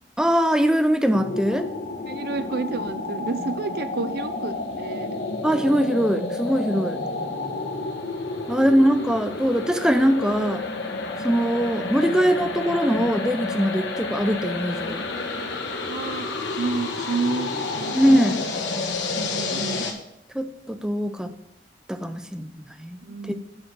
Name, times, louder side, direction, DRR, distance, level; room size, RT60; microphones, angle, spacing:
voice 1, 0.2-1.7 5.4-7.0 8.5-10.6 11.2-15.0 17.9-18.4 20.3-21.3 21.9-22.5 22.8-23.0, equal, 5° right, 9 dB, 0.5 m, -21 dB
sound 1, 1.1-19.9, left 3 dB, 70° left, 1.4 m, -30 dB
voice 2, 2.1-5.2 7.1-7.2 8.6-8.9 15.9-16.3 16.6-17.5 17.8-18.6 19.1-19.8 23.0-23.4, right 4 dB, 60° right, 11 dB, 0.5 m, -30 dB
8.6 x 5.0 x 6.0 m, 0.81 s
head